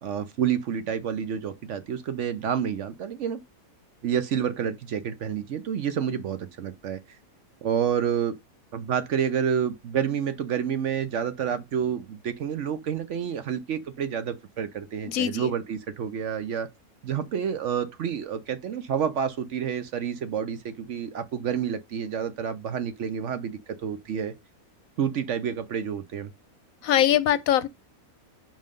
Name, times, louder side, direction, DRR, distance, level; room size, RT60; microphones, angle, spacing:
voice 1, 0.0-3.4 4.0-7.0 7.6-8.4 8.7-16.7 17.0-24.3 25.0-26.3 27.1-27.2, right 8 dB, 60° right, 0.9 m, -29 dB
voice 2, 15.1-15.5 26.8-27.7, left 11 dB, 70° left, 1.0 m, -22 dB
5.5 x 5.3 x 5.2 m
omnidirectional pair, 1.6 m